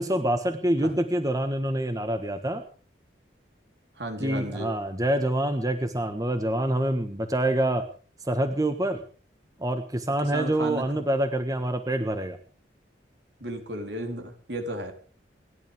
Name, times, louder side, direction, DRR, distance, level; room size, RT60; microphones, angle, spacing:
voice 1, 0.0-2.6 4.2-7.9 8.3-9.0 9.6-12.4, right 1 dB, 20° right, 7 dB, 1.4 m, -26 dB
voice 2, 4.0-4.7 10.2-10.8 13.4-14.9, right 1 dB, 70° right, 4 dB, 4.1 m, -34 dB
28.5 x 12.0 x 3.6 m, 0.41 s
head